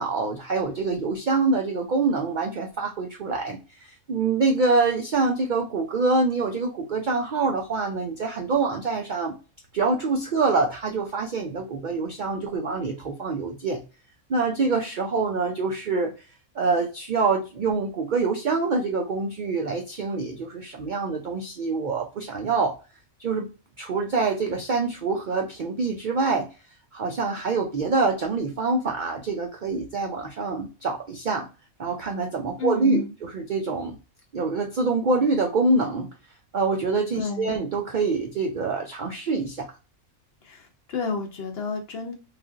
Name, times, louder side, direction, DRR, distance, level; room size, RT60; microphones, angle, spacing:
voice 1, 0.0-9.3 9.7-13.8 14.3-16.1 16.5-22.8 23.2-23.5 23.8-26.5 26.9-31.5 31.8-34.0 34.3-36.1 36.5-39.7, right 3 dB, 80° right, 2 dB, 0.4 m, -25 dB
voice 2, 32.6-33.1 37.1-37.6 40.4-42.1, left 5 dB, 60° left, 3 dB, 0.7 m, -30 dB
3.3 x 2.5 x 2.3 m, 0.32 s
omnidirectional pair, 1.4 m